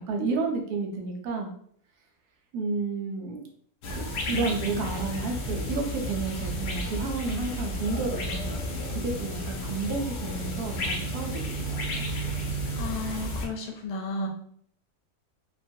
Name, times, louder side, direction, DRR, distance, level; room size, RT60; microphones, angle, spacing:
voice 1, 0.1-1.5 2.5-3.5 4.0-12.1, right 3 dB, 85° right, 2 dB, 1.2 m, -31 dB
sound 1, 3.8-13.5, equal, 65° left, 0.6 m, -32 dB
voice 2, 12.8-14.3, left 2 dB, 90° left, 2 dB, 1.2 m, -33 dB
2.9 x 2.2 x 2.6 m, 0.62 s
omnidirectional pair, 1.6 m